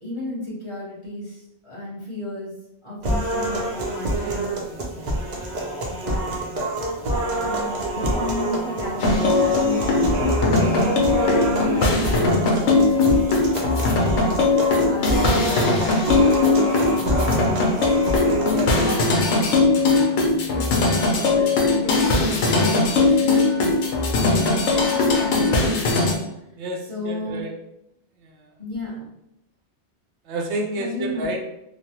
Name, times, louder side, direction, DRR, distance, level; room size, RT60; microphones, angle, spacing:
voice 1, 0.0-2.5 2.8-5.1 5.9-6.7 7.4-13.1 13.3-14.4 14.9-19.0 20.5-23.8 24.2-25.8 26.9-27.4 28.6-29.1 30.8-31.3, left 1 dB, 30° left, -8 dB, 0.8 m, -33 dB
sound 1, 3.0-19.0, right 1 dB, 50° right, 0.5 m, -26 dB
sound 2, 9.0-26.1, left 3 dB, 80° left, 0.9 m, -20 dB
voice 2, 26.5-27.5 28.2-28.6 30.2-31.4, right 1 dB, 75° right, 2 dB, 0.8 m, -30 dB
3.1 x 2.0 x 2.8 m, 0.83 s
omnidirectional pair, 1.2 m